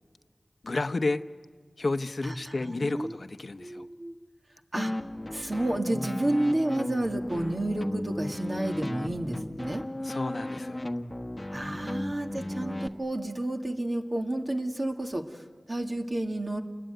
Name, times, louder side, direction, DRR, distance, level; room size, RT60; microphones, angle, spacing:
voice 1, 0.6-1.2 1.8-3.9 10.0-10.8, left 3 dB, 65° left, 10 dB, 0.9 m, -31 dB
voice 2, 2.2-3.2 3.6-4.1 4.7-4.9 5.3-9.8 11.5-16.6, right 1 dB, 40° right, 3 dB, 2.3 m, -31 dB
sound 1, 4.8-12.9, left 1 dB, 20° left, 1.3 m, -35 dB
29.0 x 20.5 x 9.3 m, 1.5 s
wide cardioid pair, 70°, 0 cm